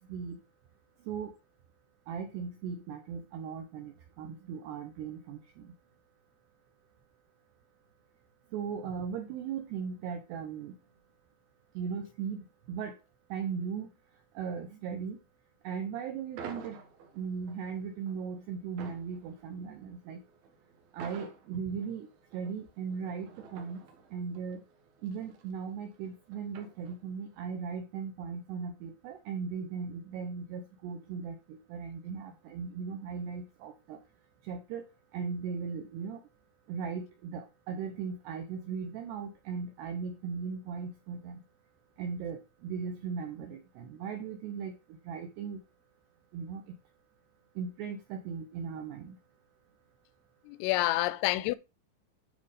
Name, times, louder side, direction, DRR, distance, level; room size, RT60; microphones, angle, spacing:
voice 1, 2.1-5.7 8.5-10.7 11.8-13.0 13.3-13.9 14.4-15.2 15.6-16.8 17.1-20.2 20.9-22.1 22.3-23.8 24.1-24.6 25.0-34.0 34.4-34.9 35.1-36.2 36.7-41.4 42.0-44.7 45.1-45.6 46.3-46.8 47.6-49.2, right 6 dB, 80° right, 2.4 m, -38 dB
sound 1, 16.4-27.3, right 6 dB, 65° right, 2.5 m, -50 dB
voice 2, 50.5-51.6, left 17 dB, 90° left, 3.2 m, -28 dB
9.5 x 4.2 x 4.9 m
omnidirectional pair, 5.7 m